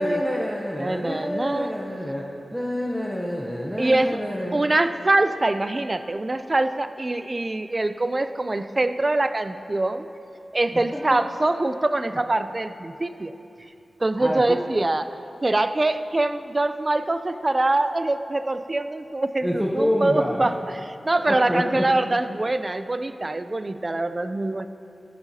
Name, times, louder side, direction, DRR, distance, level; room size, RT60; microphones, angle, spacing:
voice 1, 0.0-4.6 14.2-14.6 19.4-20.5 21.2-21.8, equal, ahead, -3 dB, 0.8 m, -27 dB
voice 2, 0.8-1.8 3.8-4.2 4.5-10.1 10.5-13.3 14.0-24.7, right 2 dB, 30° right, 11 dB, 0.4 m, -24 dB
14.0 x 10.5 x 2.8 m, 2.7 s
wide cardioid pair, 90°, 0 cm